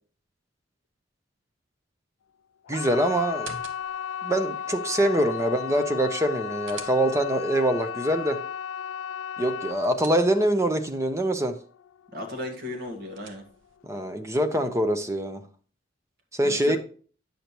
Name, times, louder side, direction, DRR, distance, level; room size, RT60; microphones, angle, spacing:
sound 1, 2.6-13.5 13.8-14.4 14.7-14.8, left 8 dB, 85° left, 0.3 m, -35 dB
voice 1, 2.7-3.6 4.2-8.4 9.4-11.6 13.8-15.4 16.3-16.8, right 1 dB, 15° right, 8 dB, 0.6 m, -24 dB
sound 2, 3.3-4.2 6.2-7.4 9.4-10.7 12.7-13.8, right 4 dB, 90° right, 1.0 m, -46 dB
voice 2, 12.1-13.4 16.4-16.8, left 1 dB, 55° right, 3 dB, 1.9 m, -35 dB
9.1 x 6.7 x 2.9 m, 0.41 s
head